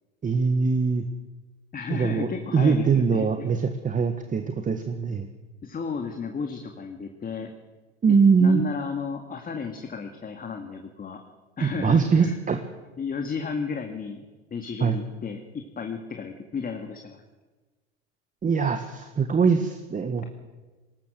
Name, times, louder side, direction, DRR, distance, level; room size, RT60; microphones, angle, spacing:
voice 1, 0.2-1.0 1.9-2.3 2.5-5.3 8.0-8.6 11.6-12.6 14.8-15.0 18.4-20.2, right 5 dB, 20° right, 7 dB, 1.5 m, -22 dB
voice 2, 1.7-3.5 5.6-7.5 8.1-11.2 11.6-12.4 13.0-17.2, left 5 dB, 25° left, 5 dB, 2.1 m, -33 dB
20.0 x 18.5 x 7.8 m, 1.3 s
hypercardioid pair, 85°, 35 cm